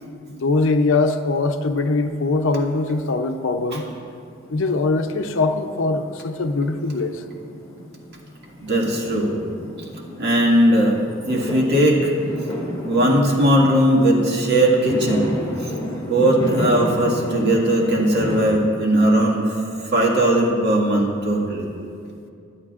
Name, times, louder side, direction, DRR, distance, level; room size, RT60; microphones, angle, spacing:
voice 1, 0.3-3.9 4.5-7.2, left 3 dB, 65° left, 7 dB, 0.6 m, -22 dB
Fireworks, 1.9-2.9 3.1-18.4, left 1 dB, 20° left, 2.3 m, -32 dB
voice 2, 8.6-9.4 10.2-11.0 11.3-12.1 12.8-15.3 15.6-15.7 16.1-19.6 19.8-21.7, right 1 dB, 55° right, -2 dB, 1.9 m, -18 dB
22.0 x 9.4 x 2.5 m, 2.5 s
head